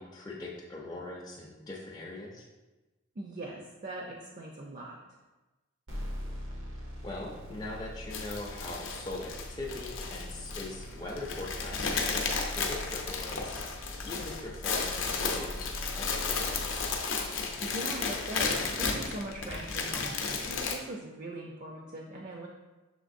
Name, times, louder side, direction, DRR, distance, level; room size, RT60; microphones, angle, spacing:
voice 1, 0.0-2.4 7.0-16.9, left 2 dB, 20° left, -3 dB, 0.4 m, -41 dB
voice 2, 3.2-5.0 17.6-22.5, right 1 dB, 40° right, 0 dB, 0.5 m, -41 dB
sound 1, 5.9-17.0, equal, 85° right, 0.9 m, -42 dB
sound 2, 8.1-20.8, left 4 dB, 70° left, 0.6 m, -33 dB
6.3 x 3.2 x 2.5 m, 1.1 s
head